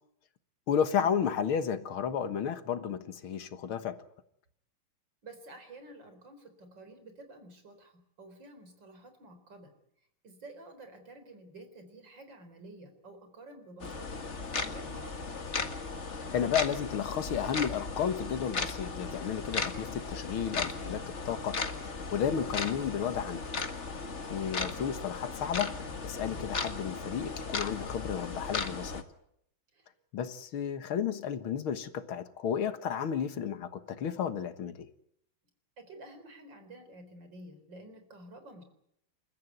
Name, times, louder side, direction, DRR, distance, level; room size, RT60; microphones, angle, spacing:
voice 1, 0.7-4.0 16.3-21.6 21.9-23.5 24.3-29.0 30.1-34.9, left 8 dB, 80° left, 2.3 m, -32 dB
voice 2, 5.2-9.7 10.2-15.5 29.7-29.9 35.8-38.6, right 2 dB, 60° right, 4.8 m, -51 dB
sound 1, 13.8-29.0, left 4 dB, 35° left, 1.9 m, -36 dB
29.0 x 14.5 x 9.5 m
omnidirectional pair, 2.3 m